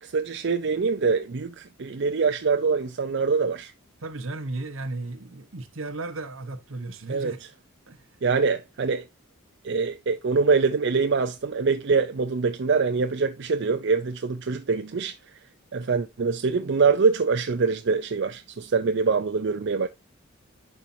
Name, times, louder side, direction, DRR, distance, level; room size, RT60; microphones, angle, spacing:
voice 1, 0.0-3.7 7.1-7.3 8.2-9.0 9.6-15.2 15.7-19.9, right 4 dB, 60° right, 0.5 m, -24 dB
voice 2, 4.0-7.4 7.9-8.0, right 2 dB, 75° right, 1.1 m, -35 dB
11.0 x 4.5 x 2.7 m
head